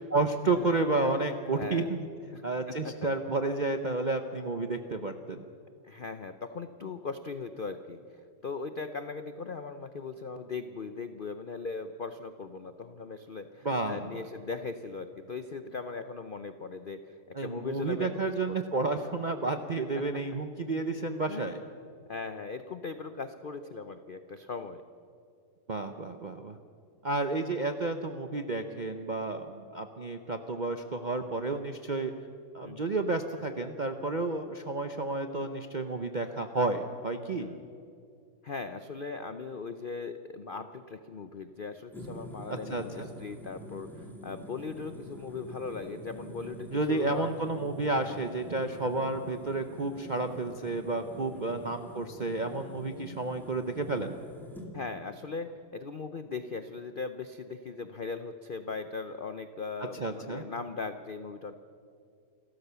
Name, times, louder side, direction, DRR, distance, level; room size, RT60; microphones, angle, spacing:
voice 1, 0.1-2.1 2.4-5.5 13.6-14.2 17.3-21.6 25.7-26.6 27.0-32.1 32.5-37.5 42.5-43.1 46.7-54.2 59.9-60.4, right 3 dB, 55° right, 6 dB, 0.5 m, -31 dB
voice 2, 1.5-1.9 2.3-2.9 5.8-18.6 21.3-21.4 22.1-24.8 32.6-32.9 37.4-37.6 38.4-47.3 48.9-49.1 51.3-51.6 54.7-61.5, left 4 dB, 80° left, 9 dB, 0.4 m, -39 dB
sound 1, 41.9-54.7, right 1 dB, ahead, 2.3 m, -46 dB
28.0 x 13.5 x 6.9 m, 2.4 s
omnidirectional pair, 2.0 m